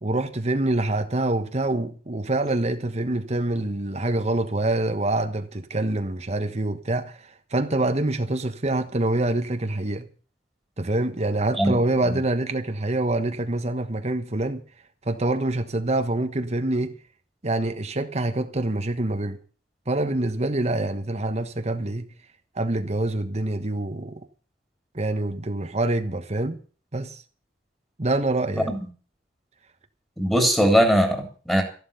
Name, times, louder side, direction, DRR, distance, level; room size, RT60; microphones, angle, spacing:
voice 1, 0.0-10.1 10.8-14.6 15.0-17.0 17.4-19.4 19.9-22.1 22.5-24.3 24.9-26.6 26.9-27.2 28.0-28.7, right 2 dB, 35° right, 1.3 m, -26 dB
voice 2, 30.2-31.6, equal, 5° left, 3.1 m, -20 dB
14.0 x 11.5 x 6.9 m
head